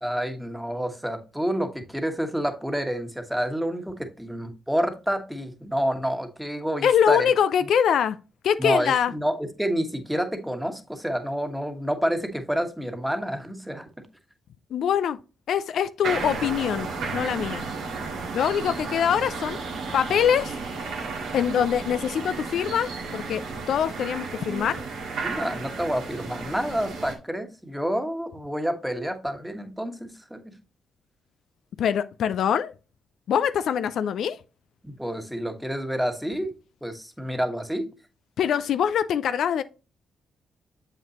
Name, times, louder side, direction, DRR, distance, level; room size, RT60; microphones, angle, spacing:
voice 1, 0.0-7.3 8.6-13.9 25.2-30.5 34.8-36.5 36.8-37.9, equal, 5° right, 1.4 m, -28 dB
voice 2, 6.8-8.2 8.4-9.1 14.7-15.2 15.5-17.6 18.3-19.6 19.9-20.6 21.3-24.8 31.8-32.7 33.3-34.4 38.4-39.6, left 8 dB, 70° left, 0.3 m, -23 dB
sound 1, 16.0-27.2, right 4 dB, 80° right, 1.8 m, -33 dB
7.3 x 5.6 x 2.9 m
hypercardioid pair, 50°, 0 cm